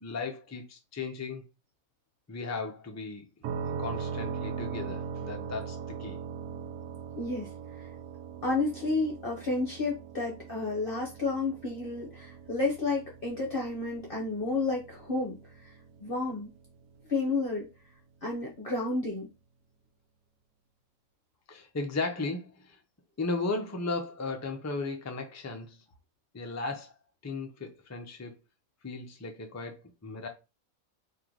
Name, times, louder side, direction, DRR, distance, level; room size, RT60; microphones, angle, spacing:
voice 1, 0.0-1.4 2.3-3.3 3.8-6.2 21.5-22.8 23.2-25.8 26.3-26.9 27.2-28.3 28.8-30.3, left 3 dB, 20° left, 0.4 m, -36 dB
sound 1, 3.4-17.1, right 6 dB, 85° right, 1.1 m, -40 dB
voice 2, 7.2-7.5 7.8-7.9 8.4-15.7 16.0-16.5 17.1-17.7 18.2-19.3, left 3 dB, 45° left, 1.0 m, -31 dB
3.0 x 2.8 x 3.8 m
omnidirectional pair, 1.5 m